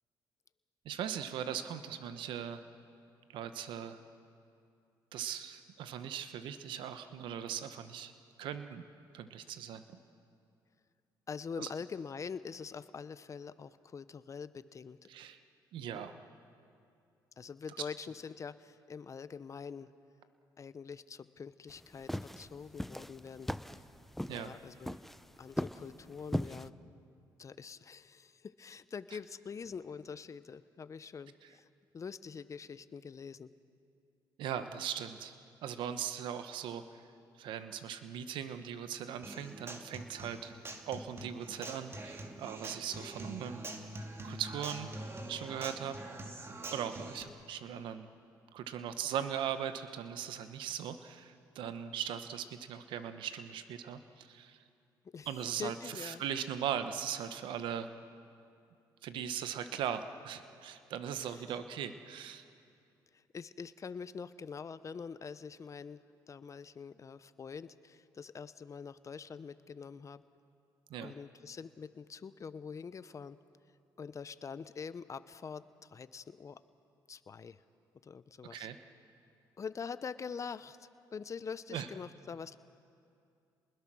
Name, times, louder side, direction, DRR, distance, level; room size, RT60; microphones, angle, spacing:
voice 1, 0.8-2.6 3.3-4.0 5.1-8.1 8.4-8.8 9.1-9.8 11.6-11.7 15.1-15.4 15.7-16.2 24.3-24.5 34.4-35.3 35.6-37.0 37.3-40.5 40.9-43.6 44.2-44.9 45.3-46.0 46.7-48.1 48.5-54.6 55.3-57.9 59.0-62.4 70.9-71.1 78.5-78.8 81.7-81.9, right 9 dB, 80° right, 10 dB, 1.1 m, -39 dB
voice 2, 11.3-15.1 17.4-19.9 20.6-23.8 24.2-25.0 25.4-26.8 27.4-31.7 31.9-33.5 55.0-55.3 55.6-56.2 61.2-61.4 63.1-70.2 71.0-73.4 74.0-76.6 77.1-77.6 78.0-78.7 79.6-82.6, left 6 dB, 40° left, 14 dB, 0.9 m, -45 dB
sound 1, 21.7-26.7, equal, 5° left, 0.6 m, -39 dB
Human voice / Acoustic guitar, 39.2-47.2, right 1 dB, 30° right, 2.5 m, -45 dB
30.0 x 20.5 x 6.3 m, 2.5 s
cardioid pair, 75°, 8 cm